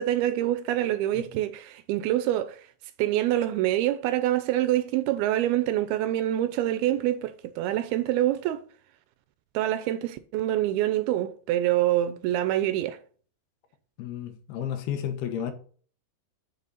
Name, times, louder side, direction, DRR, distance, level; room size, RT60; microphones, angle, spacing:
voice 1, 0.0-2.7 3.0-8.6 9.5-13.0, right 13 dB, 85° right, 2.4 m, -26 dB
voice 2, 14.0-15.5, left 9 dB, 75° left, 3.0 m, -32 dB
8.5 x 6.5 x 4.1 m
omnidirectional pair, 4.7 m